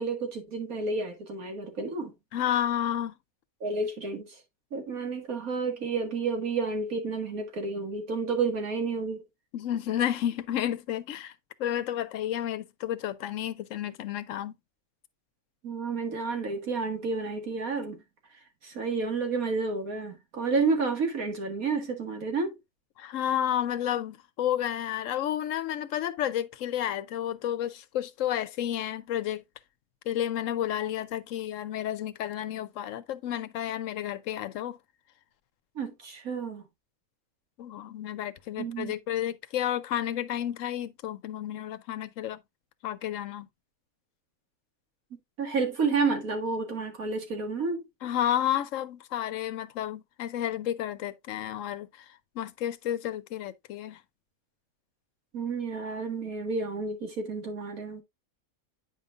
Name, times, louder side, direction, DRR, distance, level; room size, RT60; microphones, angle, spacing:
voice 1, 0.0-2.1 3.6-4.4 4.7-9.2 15.6-18.0 18.6-22.6 35.8-36.7 38.6-38.9 45.4-47.9 55.3-58.0, right 4 dB, 75° right, 2.3 m, -30 dB
voice 2, 2.3-3.1 9.5-11.3 11.6-14.5 23.0-29.4 30.1-34.8 37.6-42.4 42.8-43.5 48.0-51.9 52.4-54.0, left 11 dB, 70° left, 1.0 m, -31 dB
9.2 x 5.3 x 2.4 m
omnidirectional pair, 1.5 m